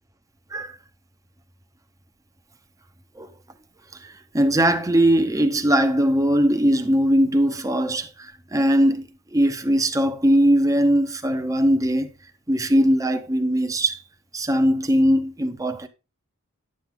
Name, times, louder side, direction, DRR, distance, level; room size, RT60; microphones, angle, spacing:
voice 1, 4.3-9.0 9.3-12.1 12.5-14.0 14.3-15.9, equal, 15° right, 0.9 m, -20 dB
11.0 x 7.7 x 3.7 m
head